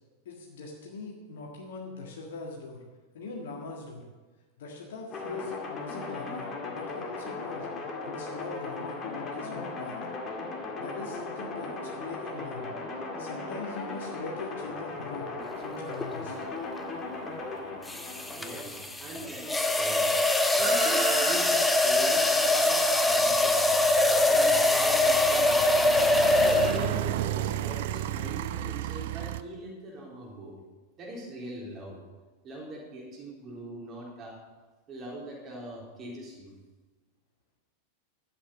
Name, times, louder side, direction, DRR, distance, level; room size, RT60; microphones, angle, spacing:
voice 1, 0.3-2.8 3.1-4.1 4.6-7.7 8.0-10.0 10.8-12.7 13.2-16.4, left 3 dB, 60° left, -1 dB, 1.8 m, -41 dB
sound 1, 5.1-18.8, left 3 dB, 25° left, 1.9 m, -37 dB
sound 2, 15.9-16.2 17.9-27.1, left 2 dB, 5° left, 0.8 m, -23 dB
voice 2, 18.4-20.1 20.6-23.6 24.3-25.7 26.6-30.6 31.0-32.0 32.4-34.4 34.9-36.5, right 1 dB, 30° right, -2 dB, 3.9 m, -41 dB
sound 3, 18.7-18.8 19.0-29.4, right 12 dB, 55° right, 0.5 m, -34 dB
11.5 x 8.4 x 6.4 m, 1.3 s
figure-of-eight pair, 90°, 0 cm